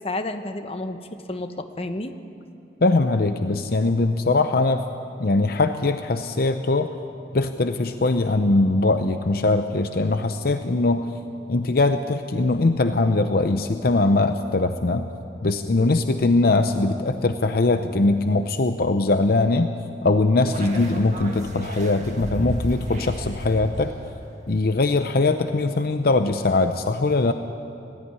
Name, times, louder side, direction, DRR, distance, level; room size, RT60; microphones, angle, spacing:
voice 1, 0.0-2.1, left 2 dB, 35° left, 8 dB, 1.0 m, -31 dB
voice 2, 2.8-4.9 5.2-6.9 7.3-11.1 11.5-15.1 15.4-19.7 20.0-23.9 24.5-27.3, left 2 dB, 60° left, 8 dB, 0.7 m, -21 dB
sound 1, 20.4-24.2, right 1 dB, 40° right, 2.2 m, -33 dB
20.0 x 13.5 x 9.6 m, 2.8 s
head